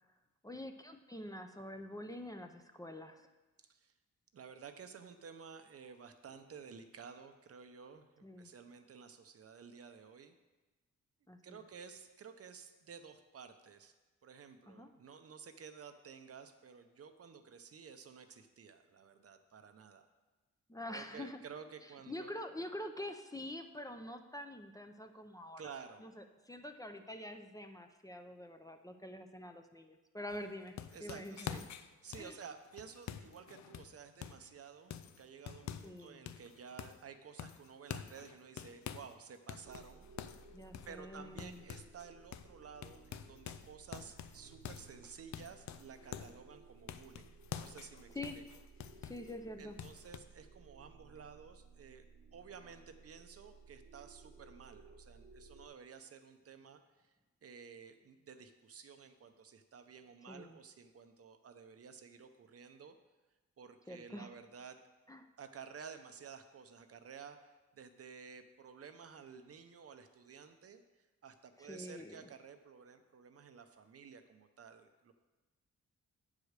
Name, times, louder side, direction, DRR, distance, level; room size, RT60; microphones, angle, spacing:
voice 1, 0.4-3.3 8.2-8.5 11.3-11.6 14.7-14.9 20.7-21.4 22.1-25.6 26.0-31.6 32.2-32.4 35.8-36.2 40.5-41.6 48.1-48.4 49.0-49.8 60.3-60.6 63.9-64.3 65.1-65.3 71.6-72.3, left 1 dB, 10° left, 6 dB, 0.6 m, -46 dB
voice 2, 3.6-3.9 4.3-10.3 11.4-13.9 14.2-20.1 20.9-22.3 25.6-26.0 30.9-40.1 40.8-48.4 49.6-52.1 52.3-57.1 57.4-63.0 63.6-64.8 65.4-70.8 71.2-75.1, right 6 dB, 55° right, 8 dB, 0.7 m, -53 dB
sound 1, 30.3-34.5 34.9-36.0 36.3-37.1 37.4-39.2 39.5-42.1 42.3-42.5 42.8-46.4 46.9-49.4 49.8-50.2, left 9 dB, 70° left, 0.5 m, -47 dB
sound 2, 39.6-55.7, right 4 dB, 85° right, 1.4 m, -59 dB
8.4 x 4.9 x 6.5 m, 1.2 s
cardioid pair, 90°, 29 cm